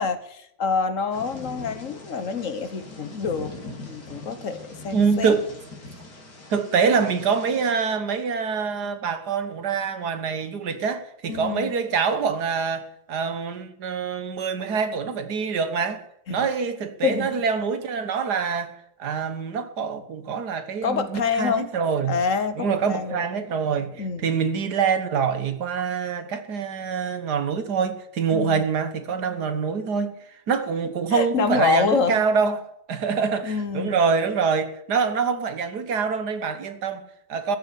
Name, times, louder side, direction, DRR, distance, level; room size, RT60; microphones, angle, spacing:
voice 1, 0.0-5.4 11.3-11.7 16.3-16.5 17.0-17.4 20.8-21.7 22.1-23.2 24.0-24.4 28.3-28.6 31.1-32.2 33.4-34.0, left 5 dB, 55° left, 1.3 m, -27 dB
Thunder / Rain, 1.1-7.7, left 2 dB, 90° left, 3.4 m, -42 dB
voice 2, 4.9-5.5 6.5-18.7 19.0-22.2 22.6-30.2 30.5-37.6, right 5 dB, 75° right, 1.9 m, -25 dB
14.5 x 7.2 x 10.0 m
omnidirectional pair, 1.8 m